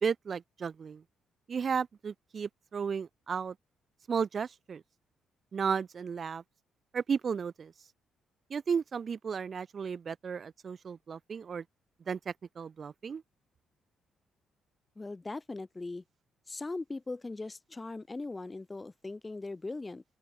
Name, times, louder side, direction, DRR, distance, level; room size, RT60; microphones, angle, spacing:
voice 1, 0.0-1.0 1.5-3.5 4.1-4.8 5.5-6.4 6.9-7.7 8.5-11.6 12.1-13.2, right 6 dB, 45° right, 0.6 m, -34 dB
voice 2, 15.0-16.0 16.5-20.0, left 3 dB, 20° left, 1.0 m, -39 dB
open air
cardioid pair, 90°, 0 cm